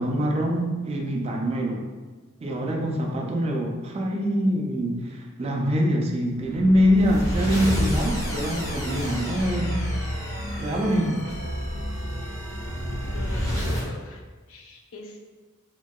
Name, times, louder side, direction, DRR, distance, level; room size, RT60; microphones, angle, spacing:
voice 1, 0.0-1.9 2.4-9.9 10.6-11.3, equal, 30° right, 0 dB, 0.3 m, -24 dB
sound 1, 6.5-13.9, equal, 15° left, 0.6 m, -29 dB
voice 2, 12.9-14.2 14.5-15.2, left 2 dB, 85° left, 2 dB, 0.4 m, -43 dB
2.8 x 2.6 x 2.3 m, 1.3 s
head